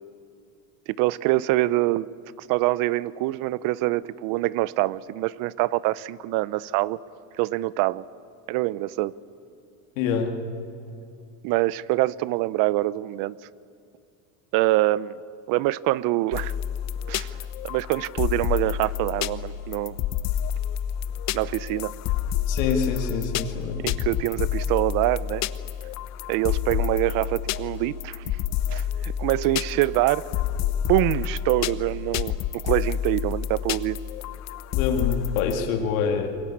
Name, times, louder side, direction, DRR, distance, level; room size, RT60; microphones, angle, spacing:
voice 1, 0.9-2.1 2.4-7.0 7.4-8.0 8.5-9.1 11.4-13.4 14.5-15.1 15.5-16.5 17.1-17.4 17.6-20.0 21.3-22.0 23.8-25.4 26.3-28.4 28.7-30.3 30.9-34.0, right 18 dB, 55° right, 20 dB, 0.7 m, -25 dB
voice 2, 10.0-10.4 22.5-23.9 34.7-36.3, left 6 dB, 80° left, 3 dB, 2.6 m, -26 dB
sound 1, 16.3-35.5, left 10 dB, 45° left, 0.9 m, -29 dB
28.0 x 22.5 x 8.6 m, 2.6 s
supercardioid pair, 135°, 39 cm